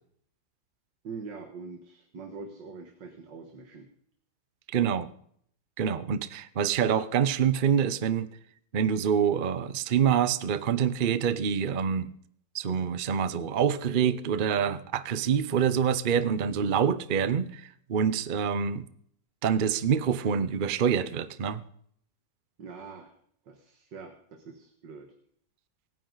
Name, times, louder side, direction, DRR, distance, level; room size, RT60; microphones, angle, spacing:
voice 1, 1.0-3.9 22.6-23.1 23.5-25.1, right 4 dB, 70° right, 4 dB, 2.3 m, -43 dB
voice 2, 4.7-5.1 5.8-8.3 8.7-12.1 12.5-18.8 19.4-21.6, right 7 dB, 45° right, 14 dB, 0.6 m, -26 dB
24.5 x 9.8 x 4.0 m, 0.63 s
omnidirectional pair, 2.0 m